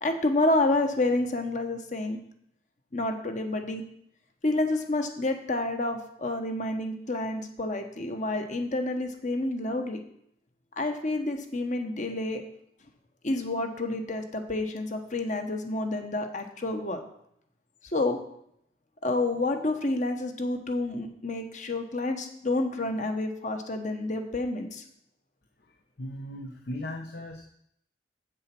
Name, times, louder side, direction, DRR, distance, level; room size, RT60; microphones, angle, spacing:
voice 1, 0.0-2.2 2.9-3.8 4.4-10.0 10.8-12.4 13.2-17.0 17.9-18.2 19.0-24.8, left 2 dB, 45° left, 6 dB, 1.2 m, -29 dB
voice 2, 25.6-27.4, left 1 dB, 60° left, 3 dB, 0.9 m, -38 dB
8.1 x 7.6 x 6.0 m, 0.72 s
head